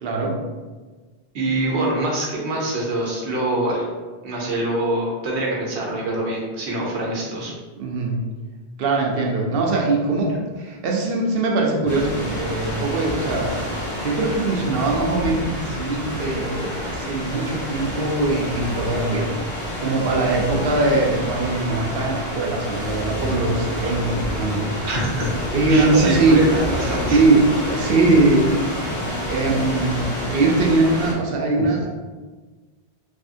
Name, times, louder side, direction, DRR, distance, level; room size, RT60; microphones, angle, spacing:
voice 1, 0.0-0.4 7.8-8.2 8.8-13.5 14.0-19.3 19.8-24.9 25.5-26.5 27.1-28.7 29.3-31.9, right 2 dB, 65° right, -1 dB, 0.7 m, -21 dB
voice 2, 1.3-3.9 4.2-7.5 24.8-25.3 25.7-27.2 31.6-31.7, right 1 dB, 80° right, -2 dB, 1.0 m, -24 dB
sound 1, 11.9-31.1, equal, 45° left, 1.6 m, -28 dB
3.4 x 2.0 x 2.5 m, 1.3 s
omnidirectional pair, 1.1 m